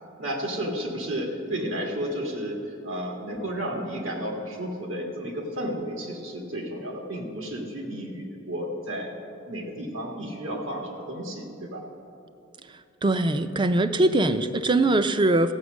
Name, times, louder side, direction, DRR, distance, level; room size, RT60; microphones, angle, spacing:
voice 1, 0.2-9.1 9.5-11.8, equal, 80° right, 0 dB, 1.9 m, -32 dB
voice 2, 13.0-15.5, right 2 dB, 25° right, 10 dB, 0.5 m, -22 dB
15.5 x 7.9 x 6.3 m, 2.7 s
head